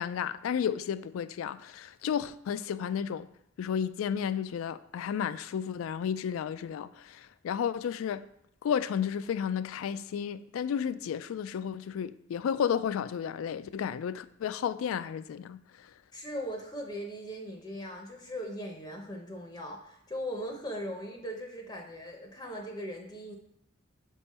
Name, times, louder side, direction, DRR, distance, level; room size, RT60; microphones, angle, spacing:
voice 1, 0.0-3.3 3.6-8.3 8.6-15.9, left 8 dB, 85° left, 0.3 m, -32 dB
voice 2, 16.1-23.4, equal, 20° left, 0.6 m, -39 dB
6.7 x 3.7 x 4.1 m
head